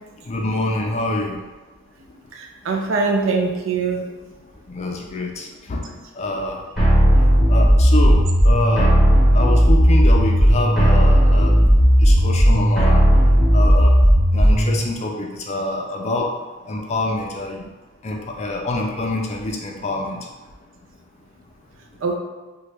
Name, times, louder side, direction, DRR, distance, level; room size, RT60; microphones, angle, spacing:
voice 1, 0.3-1.4 4.7-5.3 5.7-5.8 6.2-6.6 7.5-8.9 9.3-11.6 12.0-13.0 13.5-13.9 14.3-16.3 16.7-17.6 18.0-20.1, left 2 dB, 35° left, 1 dB, 0.4 m, -25 dB
voice 2, 2.3-4.1 22.0-22.2, right 4 dB, 75° right, 2 dB, 0.4 m, -22 dB
sound 1, 6.8-14.8, equal, ahead, 0.9 m, -14 dB
2.9 x 2.2 x 3.2 m, 1.2 s
head